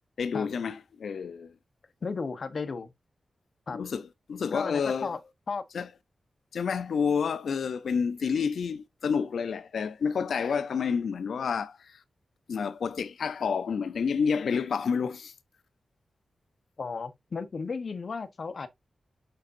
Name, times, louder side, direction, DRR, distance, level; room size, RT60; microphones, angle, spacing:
voice 1, 0.2-1.5 3.7-5.1 5.7-5.9 6.5-12.0 12.5-15.3, left 6 dB, 85° left, 0.7 m, -29 dB
voice 2, 2.0-2.9 3.7-3.8 4.5-5.2 5.5-5.6 16.8-18.7, left 4 dB, 55° left, 1.1 m, -34 dB
6.6 x 6.5 x 2.7 m
wide cardioid pair, 85°, 0 cm